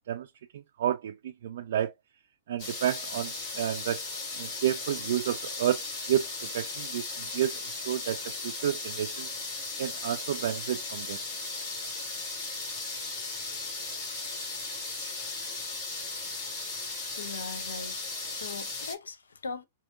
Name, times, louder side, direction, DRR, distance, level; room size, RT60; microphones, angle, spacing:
voice 1, 0.5-1.9 2.5-4.0 4.3-6.2 6.5-7.5 7.8-9.3 9.8-11.2, right 10 dB, 60° right, 0.3 m, -30 dB
sound 1, 2.6-18.9, left 3 dB, 45° left, 2.6 m, -36 dB
voice 2, 17.2-18.0 18.3-19.6, left 4 dB, 75° left, 0.6 m, -40 dB
4.8 x 2.7 x 2.5 m
figure-of-eight pair, 105°, 0 cm